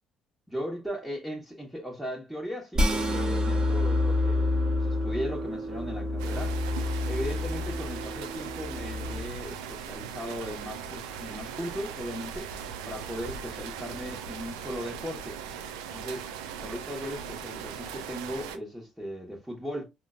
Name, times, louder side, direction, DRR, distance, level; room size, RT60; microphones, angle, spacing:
voice 1, 0.5-6.6 7.0-12.5 12.8-15.4 15.9-16.3 16.6-19.8, equal, ahead, 1.2 m, -37 dB
sound 1, 2.7-9.2, left 2 dB, 25° right, 1.2 m, -28 dB
sound 2, 6.2-18.6, right 7 dB, 70° right, 0.5 m, -39 dB
5.6 x 2.2 x 2.5 m
figure-of-eight pair, 50°, 3 cm